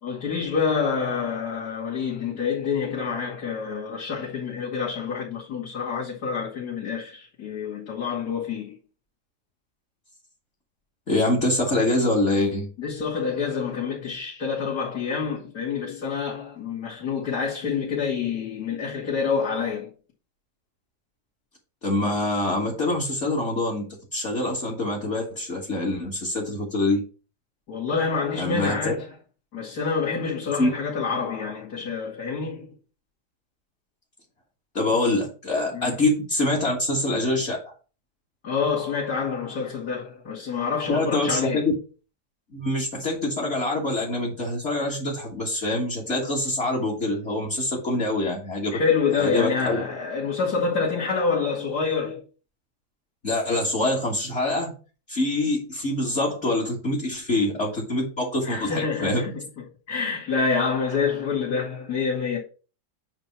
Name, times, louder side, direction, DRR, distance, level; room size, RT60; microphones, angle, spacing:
voice 1, 0.0-8.7 12.8-19.9 27.7-29.0 29.5-32.7 35.7-35.9 38.4-41.6 48.7-52.2 58.4-59.3 59.9-62.4, left 5 dB, 70° left, 2.9 m, -27 dB
voice 2, 11.1-12.7 21.8-23.9 24.1-27.0 28.3-28.9 30.6-30.7 34.7-37.7 40.9-41.7 42.5-48.8 49.2-49.8 53.2-54.7 55.1-59.2, left 2 dB, 45° left, 2.0 m, -25 dB
8.8 x 2.9 x 5.8 m
omnidirectional pair, 1.7 m